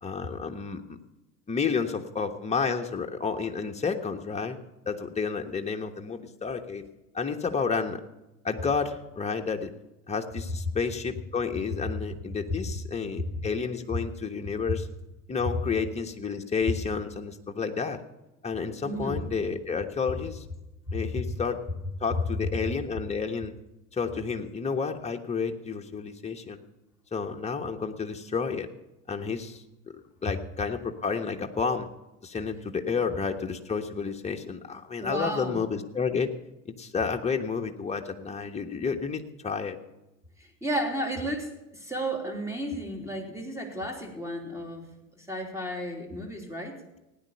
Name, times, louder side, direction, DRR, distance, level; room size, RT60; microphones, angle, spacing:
voice 1, 0.0-1.0 1.5-4.6 4.9-6.8 7.1-8.0 8.4-9.7 10.1-14.9 15.3-18.0 18.4-20.4 20.9-21.6 22.0-23.5 23.9-26.6 27.1-28.7 29.1-29.6 30.2-31.9 32.2-36.3 36.8-39.8, left 5 dB, 15° left, 4 dB, 1.4 m, -30 dB
voice 2, 18.8-19.2 20.9-21.2 22.4-22.5 32.9-33.0 35.0-35.6 40.4-44.8 45.1-46.8, equal, 5° right, 2 dB, 3.4 m, -33 dB
17.0 x 9.8 x 6.8 m, 0.97 s
hypercardioid pair, 85°, 48 cm